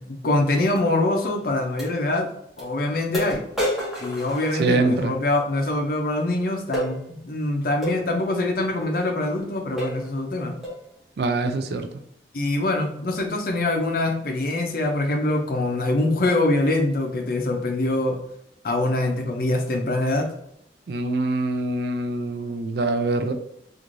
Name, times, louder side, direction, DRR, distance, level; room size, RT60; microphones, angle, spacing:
voice 1, 0.1-2.3 2.6-3.4 4.0-10.6 12.3-18.2 18.6-20.3, left 2 dB, 55° left, 3 dB, 0.5 m, -24 dB
sound 1, 0.8-0.9 1.8-1.9 2.6-2.7 3.1-5.1 6.7-6.9 7.8-8.0 8.8-9.0 9.4-9.5 9.8-10.1 10.6-10.9, equal, ahead, 0.9 m, -30 dB
voice 2, 4.6-5.1 11.2-11.9 20.9-23.3, right 2 dB, 60° right, 7 dB, 0.3 m, -24 dB
3.0 x 2.5 x 2.5 m, 0.73 s
head